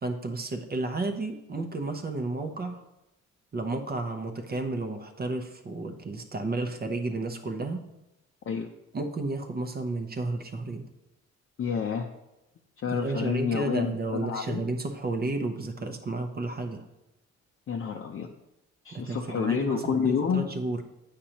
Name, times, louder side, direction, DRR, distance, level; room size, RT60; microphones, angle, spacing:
voice 1, 0.0-2.8 3.5-7.9 8.9-10.9 12.9-16.8 18.9-20.8, right 2 dB, 30° right, 6 dB, 0.7 m, -32 dB
voice 2, 11.6-12.1 12.8-14.6 17.7-18.3 18.8-20.4, left 6 dB, 45° left, 2 dB, 0.6 m, -29 dB
8.5 x 5.1 x 2.9 m, 0.92 s
cardioid pair, 90°, 30 cm